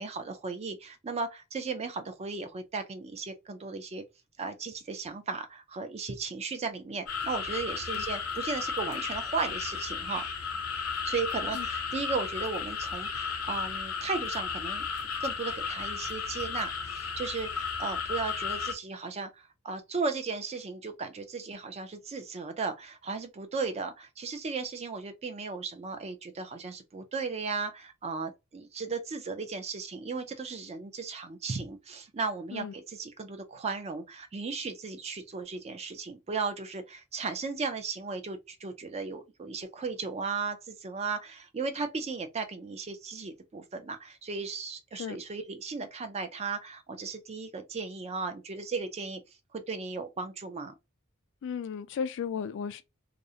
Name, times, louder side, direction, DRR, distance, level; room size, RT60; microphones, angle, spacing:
voice 1, 0.0-4.0 4.4-10.3 11.0-14.9 15.2-49.2 49.5-50.7, right 4 dB, 30° right, 0.4 m, -36 dB
sound 1, 7.1-18.7, left 5 dB, 85° left, 0.7 m, -34 dB
voice 2, 51.4-52.8, left 6 dB, 55° left, 0.3 m, -35 dB
2.4 x 2.0 x 2.7 m
head